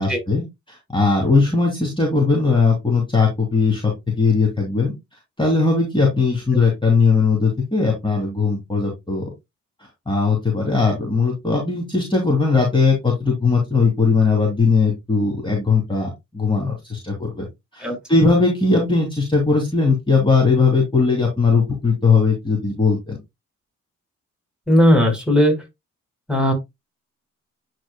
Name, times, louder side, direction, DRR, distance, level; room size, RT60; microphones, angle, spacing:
voice 1, 0.0-3.9 4.2-4.9 5.4-9.3 10.1-17.5 17.7-23.2, left 4 dB, 15° left, 2.8 m, -19 dB
voice 2, 24.7-25.6 26.3-26.5, equal, 5° right, 4.3 m, -16 dB
10.5 x 4.6 x 2.2 m
supercardioid pair, 60°, 32 cm